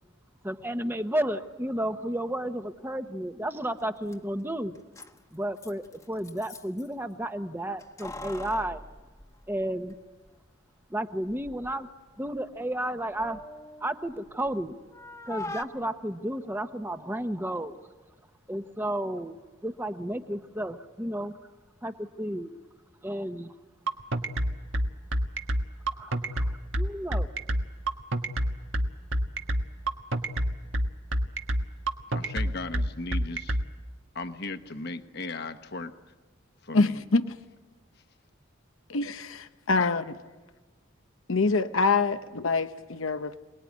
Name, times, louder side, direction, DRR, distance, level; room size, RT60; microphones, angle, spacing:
voice 1, 0.4-4.7 5.3-8.8 9.5-9.9 10.9-11.9 12.2-13.4 13.8-14.8 15.3-17.8 18.5-19.4 19.6-21.4 21.8-22.5 23.0-23.5 26.0-27.3, right 1 dB, 10° right, 1.1 m, -32 dB
Keys jangling, 3.8-3.9 4.1-4.2 4.8-6.9 7.8-10.0 10.3-10.4 11.2-11.8 12.1-14.6 14.9-15.6, left 2 dB, 15° left, 1.1 m, -43 dB
sound 1, 23.9-33.6, right 1 dB, 70° right, 1.5 m, -27 dB
voice 2, 32.1-33.6 34.1-35.9 36.6-37.0, left 3 dB, 55° left, 1.2 m, -36 dB
voice 3, 36.7-37.3 38.9-40.0 41.3-43.4, left 3 dB, 80° left, 0.9 m, -25 dB
27.5 x 20.0 x 9.4 m
head